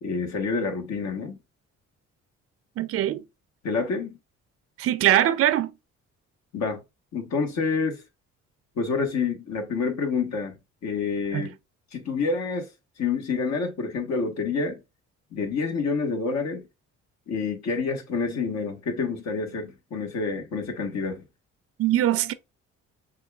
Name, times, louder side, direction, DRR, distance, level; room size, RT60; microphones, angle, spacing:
voice 1, 0.0-1.4 3.6-4.2 6.5-6.8 7.1-8.0 8.8-10.6 10.8-11.5 11.9-12.7 13.0-14.8 15.3-16.6 17.3-21.2, left 4 dB, 65° left, 1.3 m, -28 dB
voice 2, 2.8-3.2 4.8-5.7 11.3-11.5 21.8-22.3, right 12 dB, 50° right, 0.4 m, -22 dB
6.3 x 2.4 x 2.3 m
cardioid pair, 90°, 30 cm